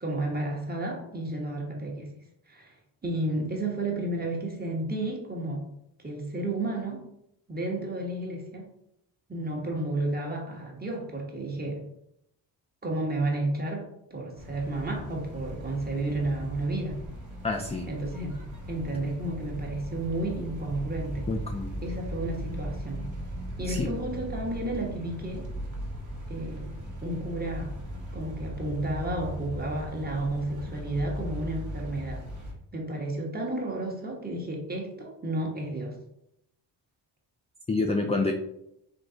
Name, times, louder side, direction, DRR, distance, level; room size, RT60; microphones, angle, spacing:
voice 1, 0.0-2.1 2.5-2.7 3.0-5.7 6.0-7.1 7.5-8.7 9.3-11.8 12.8-17.0 17.9-18.3 18.7-21.3 21.8-23.0 23.6-25.5 26.3-26.7 27.0-27.8 28.1-32.2 32.7-36.0, right 2 dB, 20° right, 0 dB, 1.2 m, -32 dB
sound 1, 14.4-32.5, equal, 40° right, 1.1 m, -38 dB
voice 2, 17.4-17.9 21.3-21.8 23.7-23.9 37.7-38.3, left 3 dB, 15° left, 3 dB, 0.3 m, -28 dB
3.8 x 3.2 x 3.9 m, 0.79 s
cardioid pair, 100°, 45 cm